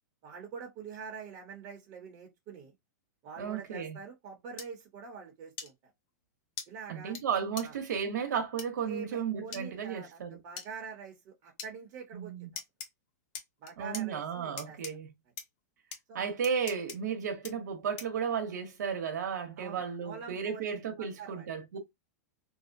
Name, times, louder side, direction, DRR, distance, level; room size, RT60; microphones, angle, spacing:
voice 1, 0.2-2.7 3.2-5.9 6.7-7.2 7.6-7.8 8.9-12.5 13.6-14.8 16.1-16.3 19.6-20.6 21.0-21.5, right 6 dB, 40° right, 0.8 m, -45 dB
voice 2, 3.4-4.0 6.9-10.4 12.1-12.5 13.8-15.1 16.1-21.8, right 7 dB, 85° right, 0.8 m, -34 dB
sound 1, 4.6-4.7 5.6-5.7 6.6-6.7 7.2-7.3 7.6-7.7 8.6-8.7 9.5-9.6 10.6-10.7 11.6-11.7 12.6-12.9 13.3-14.0 14.6-14.9 15.4-15.5 15.9-16.0 16.4-17.0 17.4-17.5 18.0-18.2, left 6 dB, 45° left, 0.8 m, -41 dB
2.6 x 2.1 x 2.5 m
supercardioid pair, 150°, 9 cm